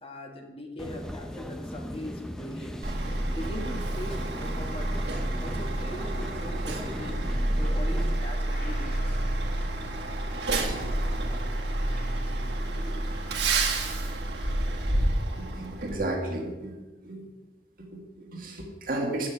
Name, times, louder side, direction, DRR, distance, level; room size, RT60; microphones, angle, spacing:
voice 1, 0.0-2.8 3.3-4.9 5.4-7.2 7.6-9.2, equal, 30° left, 2 dB, 1.4 m, -40 dB
sound 1, 0.8-8.2, equal, 5° left, 0.6 m, -38 dB
Truck, 2.8-16.0, right 1 dB, 70° right, 1.7 m, -29 dB
sound 2, 7.8-13.3, right 1 dB, 50° left, 1.8 m, -46 dB
voice 2, 15.3-17.3 17.8-19.3, right 1 dB, 55° right, 1 dB, 2.0 m, -33 dB
8.8 x 6.5 x 7.5 m, 1.1 s
head